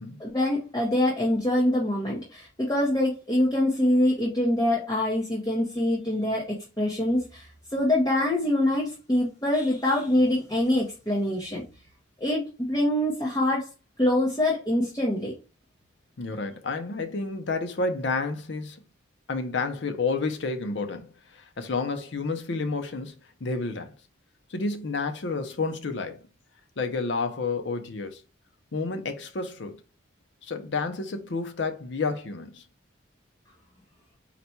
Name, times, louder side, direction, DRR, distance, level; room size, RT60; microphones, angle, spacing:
voice 1, 0.2-11.6 12.2-13.7 14.0-15.3, left 1 dB, 20° left, 0.7 m, -25 dB
voice 2, 16.2-18.8 19.3-23.1 23.4-23.9 24.5-26.2 26.8-28.2 28.7-29.8 30.5-32.6, left 3 dB, 65° left, 0.6 m, -30 dB
4.1 x 2.2 x 4.2 m
head